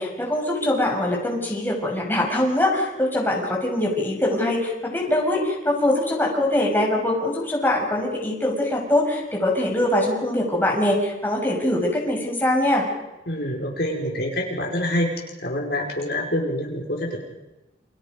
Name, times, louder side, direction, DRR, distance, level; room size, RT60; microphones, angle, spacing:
voice 1, 0.0-12.8, left 1 dB, 10° left, -1 dB, 6.6 m, -23 dB
voice 2, 13.3-15.1 15.4-17.2, left 1 dB, 60° left, -1 dB, 5.4 m, -26 dB
29.5 x 29.0 x 5.4 m, 0.99 s
head